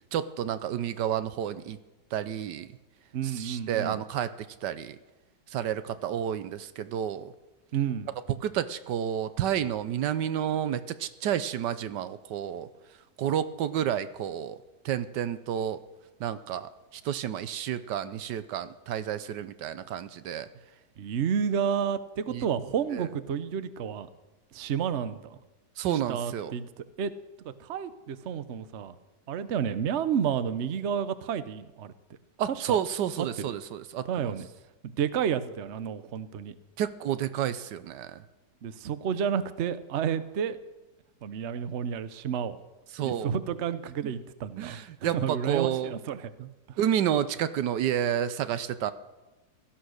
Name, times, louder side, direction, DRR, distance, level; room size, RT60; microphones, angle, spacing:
voice 1, 0.1-1.8 2.1-2.7 3.2-4.3 4.6-5.0 5.5-7.3 8.4-12.7 13.2-14.6 14.8-15.8 16.2-20.5 22.3-22.5 22.9-23.1 25.8-26.5 32.4-34.3 36.8-38.2 42.9-43.3 44.6-45.9 46.4-46.5 46.8-48.9, right 10 dB, 80° right, 13 dB, 1.3 m, -30 dB
voice 2, 3.1-4.0 7.7-8.1 21.0-24.1 24.5-25.4 26.1-26.7 27.0-27.1 27.4-28.9 29.3-31.9 32.7-32.8 33.2-33.3 34.0-34.5 35.0-36.5 38.6-40.6 41.2-42.6 43.0-46.3 46.7-46.8, right 8 dB, 50° right, 13 dB, 0.9 m, -30 dB
17.0 x 13.0 x 6.4 m, 1.1 s
omnidirectional pair, 1.8 m